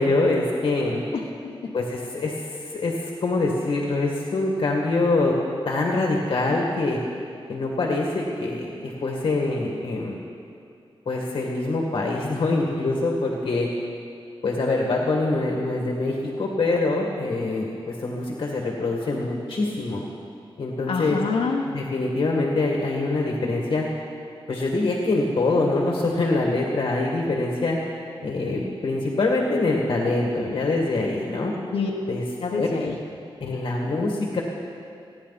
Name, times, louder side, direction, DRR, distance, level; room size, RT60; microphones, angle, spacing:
voice 1, 0.0-1.0 1.7-5.3 5.7-7.0 7.5-10.2 11.1-13.7 14.4-20.0 20.6-21.2 21.6-23.8 24.5-27.8 28.2-31.5 32.1-32.2 32.6-32.7 33.4-34.4, left 2 dB, 60° left, -1 dB, 2.0 m, -24 dB
voice 2, 1.1-1.7 20.9-21.6 31.7-31.9 32.4-33.0, left 4 dB, 90° left, -3 dB, 1.3 m, -27 dB
29.5 x 10.5 x 4.2 m, 2.5 s
wide cardioid pair, 140°, 9 cm